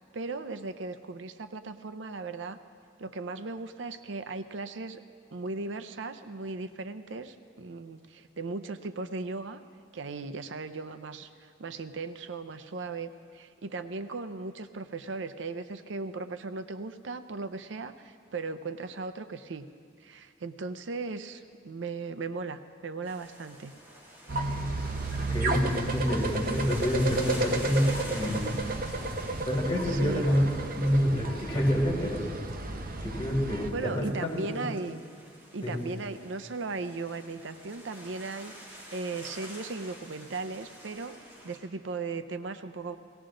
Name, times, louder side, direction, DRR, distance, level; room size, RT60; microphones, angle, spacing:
voice 1, 0.1-2.6 3.0-5.0 5.3-9.6 9.9-19.6 20.0-23.7 29.8-30.2 33.7-35.0 35.5-41.2 41.4-43.0, right 3 dB, 80° right, 11 dB, 0.6 m, -37 dB
sound 1, 23.0-41.6, equal, 15° right, 2.8 m, -47 dB
sound 2, 24.3-33.7, right 2 dB, 50° right, 0.9 m, -32 dB
voice 2, 25.3-28.5 29.4-32.3 33.0-34.7 35.6-35.8, equal, 25° left, -4 dB, 3.7 m, -28 dB
18.5 x 17.5 x 3.8 m, 2.2 s
head